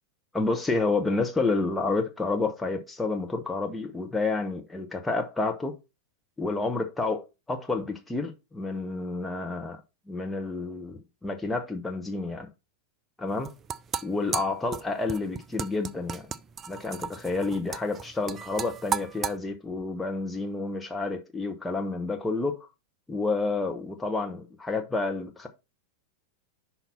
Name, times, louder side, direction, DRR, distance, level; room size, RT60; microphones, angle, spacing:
voice 1, 0.3-5.7 6.4-9.8 10.1-12.5 13.2-13.5 14.0-16.3 16.7-22.7 23.1-25.5, left 3 dB, 10° left, 1.0 m, -29 dB
sound 1, 13.3-19.4, right 7 dB, 25° right, 0.4 m, -35 dB
5.7 x 4.2 x 5.7 m
figure-of-eight pair, 90°, 0 cm